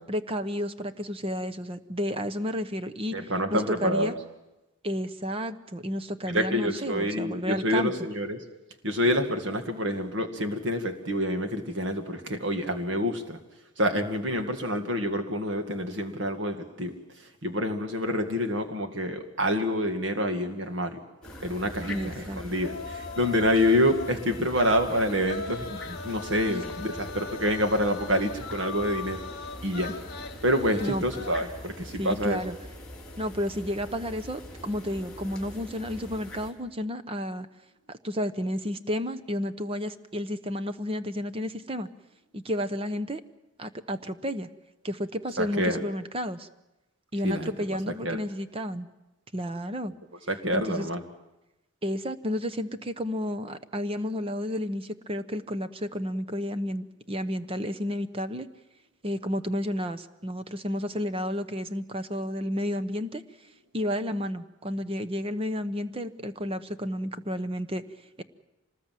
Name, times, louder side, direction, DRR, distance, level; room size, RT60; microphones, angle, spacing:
voice 1, 0.1-3.2 3.5-4.1 4.8-7.9 21.9-22.4 26.5-26.6 30.8-31.0 32.0-32.6 33.2-37.5 37.9-41.9 42.3-43.2 43.6-44.5 44.8-46.5 47.1-48.9 49.3-49.9 50.5-50.9 51.8-58.5 59.0-63.2 63.7-67.8 68.2-68.3, equal, 25° right, 11 dB, 0.9 m, -31 dB
voice 2, 3.1-4.1 6.2-8.4 8.8-13.4 13.8-16.9 17.4-21.0 21.4-29.2 29.6-29.9 30.4-32.4 45.4-45.8 47.2-47.5 47.9-48.2 50.3-51.0, equal, 55° right, 6 dB, 2.0 m, -27 dB
sound 1, 21.2-36.5, left 1 dB, 5° left, 3.6 m, -43 dB
sound 2, 21.8-31.4, left 4 dB, 45° left, 1.5 m, -40 dB
25.5 x 19.5 x 7.6 m, 0.98 s
head